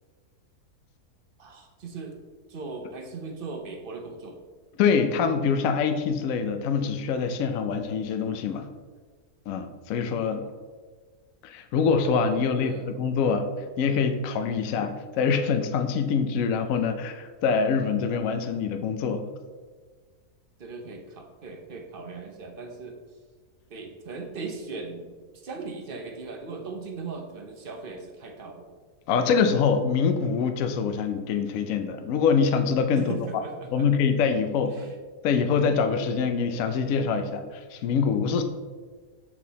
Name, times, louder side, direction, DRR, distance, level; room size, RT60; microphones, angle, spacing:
voice 1, 1.4-2.2 2.5-4.4 12.4-12.9 20.6-23.0 23.7-28.7 32.9-33.8 34.7-34.9, right 4 dB, 45° right, 4 dB, 0.8 m, -38 dB
voice 2, 4.8-8.7 9.5-10.5 11.4-13.5 13.8-19.3 29.1-33.4 33.7-34.7 35.2-38.4, left 6 dB, 70° left, 7 dB, 0.9 m, -25 dB
7.3 x 4.7 x 4.0 m, 1.5 s
omnidirectional pair, 1.7 m